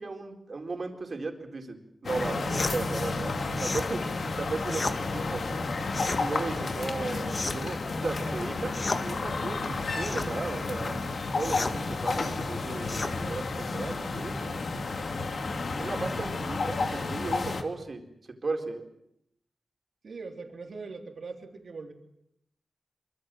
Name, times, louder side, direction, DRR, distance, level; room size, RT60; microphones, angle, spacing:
voice 1, 0.0-5.7 6.2-14.6 15.8-18.0 18.4-18.9, right 3 dB, 50° right, 3 dB, 4.4 m, -36 dB
sound 1, 2.0-17.6, left 3 dB, 65° left, 2.7 m, -31 dB
sound 2, 2.5-2.8 3.5-3.9 4.7-5.0 5.9-6.2 7.3-7.7 8.7-9.0 10.0-10.3 11.4-11.8 12.9-13.1, left 3 dB, 40° left, 1.9 m, -32 dB
voice 2, 20.0-21.9, right 4 dB, 70° right, 3 dB, 3.5 m, -41 dB
26.0 x 25.5 x 7.7 m, 0.77 s
wide cardioid pair, 95°, 0 cm